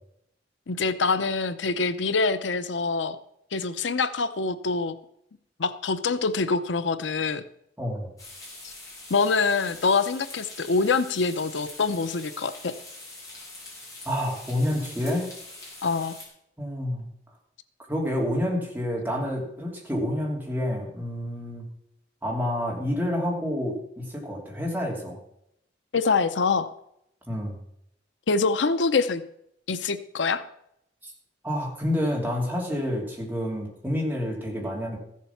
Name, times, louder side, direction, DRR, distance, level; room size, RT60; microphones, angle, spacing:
voice 1, 0.7-3.2 3.5-5.0 5.6-7.4 8.6-8.7 9.1-12.7 15.8-16.2 25.9-26.7 28.3-29.2 29.7-30.4, left 4 dB, 85° left, 13 dB, 0.7 m, -25 dB
voice 2, 7.8-8.1 14.0-15.3 16.6-17.1 17.9-21.7 22.2-25.2 27.3-27.6 31.0-31.1 31.4-35.0, left 1 dB, 10° right, -2 dB, 2.9 m, -28 dB
sound 1, 8.2-16.3, left 2 dB, 20° left, 4.8 m, -44 dB
14.5 x 7.4 x 5.8 m, 0.76 s
head